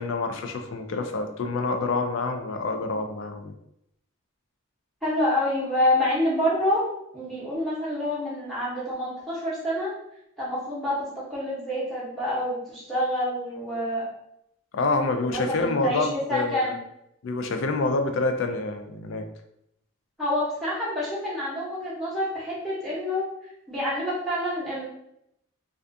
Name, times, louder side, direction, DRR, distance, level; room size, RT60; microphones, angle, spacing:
voice 1, 0.0-3.5 14.7-16.7 17.2-19.2, left 3 dB, 60° left, 6 dB, 0.3 m, -27 dB
voice 2, 5.0-6.8 7.1-9.9 10.4-14.0 15.2-16.8 20.2-23.3 23.7-24.9, left 1 dB, ahead, -10 dB, 0.8 m, -27 dB
2.4 x 2.3 x 2.5 m, 0.78 s
head